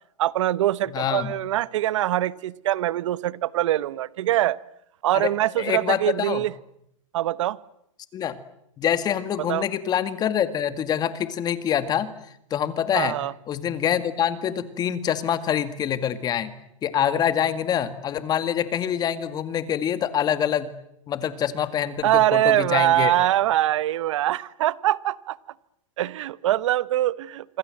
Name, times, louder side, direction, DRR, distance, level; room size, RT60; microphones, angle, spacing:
voice 1, 0.2-4.6 5.0-6.5 7.1-7.6 9.5-9.6 12.9-13.3 22.0-25.4 26.0-27.6, right 14 dB, 65° right, 19 dB, 1.0 m, -23 dB
voice 2, 0.9-1.3 5.1-5.3 5.6-6.5 8.1-8.4 8.8-12.1 12.5-13.2 13.5-16.5 16.8-20.7 21.1-23.1, left 9 dB, 25° left, 12 dB, 2.0 m, -25 dB
26.0 x 26.0 x 7.8 m, 0.77 s
hypercardioid pair, 140°, 17 cm